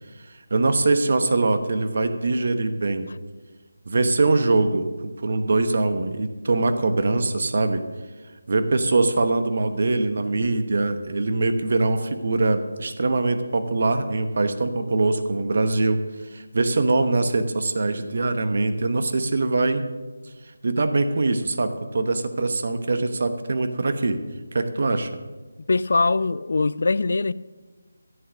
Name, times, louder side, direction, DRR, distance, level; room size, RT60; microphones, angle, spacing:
voice 1, 0.5-3.1 3.9-7.8 8.5-16.0 16.3-19.9 20.6-24.2 24.5-25.1, right 3 dB, 50° right, 1.0 m, -23 dB
voice 2, 25.7-27.3, left 3 dB, 55° left, 0.4 m, -22 dB
13.5 x 7.9 x 6.3 m
figure-of-eight pair, 170°, 0 cm